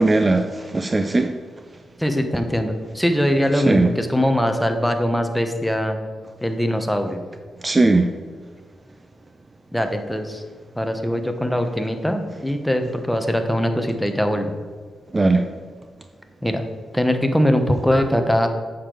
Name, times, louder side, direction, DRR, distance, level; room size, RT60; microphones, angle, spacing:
voice 1, 0.0-1.3 3.5-3.9 7.6-8.1 15.1-15.4, right 2 dB, 25° right, 7 dB, 0.5 m, -18 dB
voice 2, 2.0-6.0 6.4-7.2 9.7-10.4 10.8-14.5 16.4-16.6 16.9-18.5, equal, 5° left, 6 dB, 1.0 m, -21 dB
8.5 x 6.7 x 3.9 m, 1.5 s
cardioid pair, 75°, 0 cm